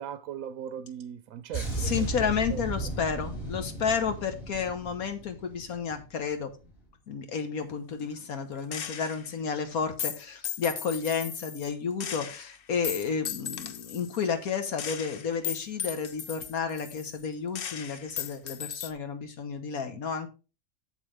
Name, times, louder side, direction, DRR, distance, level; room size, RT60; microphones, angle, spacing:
voice 1, 0.0-1.9 2.5-2.6 8.0-8.1, right 9 dB, 75° right, 1.0 m, -39 dB
sound 1, 1.5-6.1 6.3-6.6, right 1 dB, 40° left, 2.8 m, -35 dB
voice 2, 1.8-6.5 7.1-20.3, left 6 dB, 75° left, 1.7 m, -31 dB
Gunshot gunfire, 8.7-9.3 10.0-11.7 12.0-14.2 14.8-17.3 17.6-18.9, left 8 dB, 55° left, 0.7 m, -37 dB
8.1 x 7.4 x 3.4 m
omnidirectional pair, 1.5 m